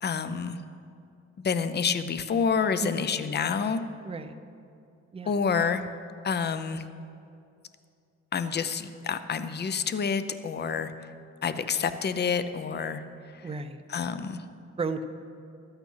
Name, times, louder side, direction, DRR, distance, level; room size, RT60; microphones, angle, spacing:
voice 1, 0.0-0.6 1.4-3.8 5.3-5.8 6.2-6.8 8.3-10.9 11.4-13.0 13.3-13.5 13.9-14.4, left 6 dB, 35° left, 11 dB, 0.6 m, -28 dB
voice 2, 4.0-4.4 5.1-5.3 13.4-13.8 14.8-15.1, right 4 dB, 20° right, 8 dB, 0.7 m, -33 dB
12.5 x 8.9 x 5.6 m, 2.5 s
cardioid pair, 90°, 30 cm